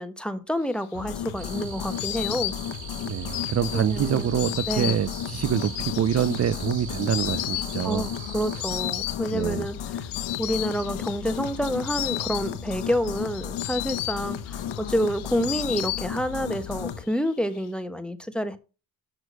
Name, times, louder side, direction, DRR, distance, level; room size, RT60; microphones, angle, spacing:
voice 1, 0.0-2.5 3.7-4.3 4.7-5.0 7.8-10.0 10.4-18.6, equal, ahead, 1.2 m, -28 dB
Insect, 0.8-16.5 16.8-17.6, left 16 dB, 85° left, 0.8 m, -35 dB
sound 1, 0.9-17.0, left 9 dB, 65° left, 1.0 m, -34 dB
sound 2, 1.4-8.8, right 6 dB, 70° right, 4.2 m, -42 dB
voice 2, 3.1-8.1 9.3-9.7, right 9 dB, 35° right, 0.4 m, -26 dB
6.4 x 6.1 x 6.4 m
supercardioid pair, 50°, 48 cm